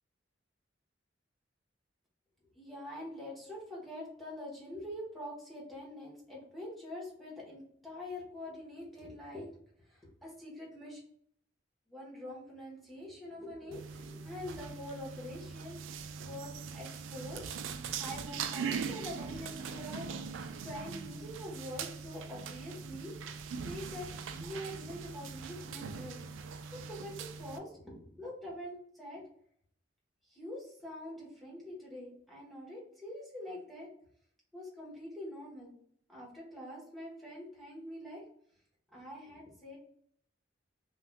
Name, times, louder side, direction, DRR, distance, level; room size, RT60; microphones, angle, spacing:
voice 1, 2.5-9.5 9.9-11.0 11.9-15.8 16.2-17.5 17.9-20.3 20.6-23.1 23.6-26.2 26.7-29.2 30.3-33.9 34.5-35.7 36.1-38.2 38.9-39.8, left 1 dB, ahead, -5 dB, 1.0 m, -45 dB
sound 1, 13.7-27.6, right 6 dB, 85° right, 0.3 m, -41 dB
2.6 x 2.3 x 3.3 m, 0.66 s
head